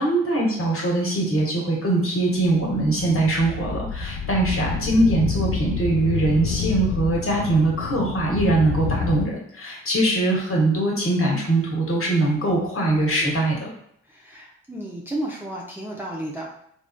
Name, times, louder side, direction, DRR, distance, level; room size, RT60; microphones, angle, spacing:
voice 1, 0.0-13.6, right 2 dB, 40° left, -2 dB, 1.3 m, -22 dB
sound 1, 2.4-9.2, left 5 dB, 80° left, 0.5 m, -28 dB
voice 2, 12.9-13.3 14.0-16.5, right 1 dB, 5° right, -3 dB, 0.6 m, -33 dB
3.4 x 2.4 x 2.2 m, 0.71 s
hypercardioid pair, 40°, 35 cm